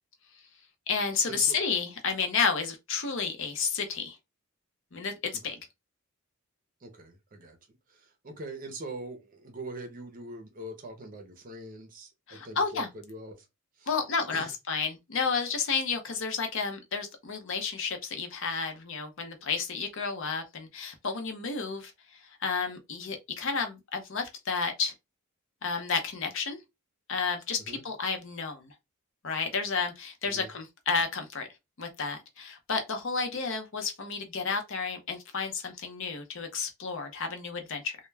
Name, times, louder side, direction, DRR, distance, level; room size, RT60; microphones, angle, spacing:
voice 1, 0.9-4.2 4.9-5.1 5.4-5.5 12.3-12.9 13.9-21.9 22.4-24.9 25.6-26.6 27.1-28.7 29.2-31.5 31.8-38.0, left 5 dB, 55° left, 0.6 m, -31 dB
voice 2, 6.8-7.6 8.2-13.4 13.8-13.9 14.3-14.5 27.6-27.8 30.3-30.5, right 2 dB, 35° right, 0.6 m, -42 dB
2.2 x 2.2 x 3.2 m
head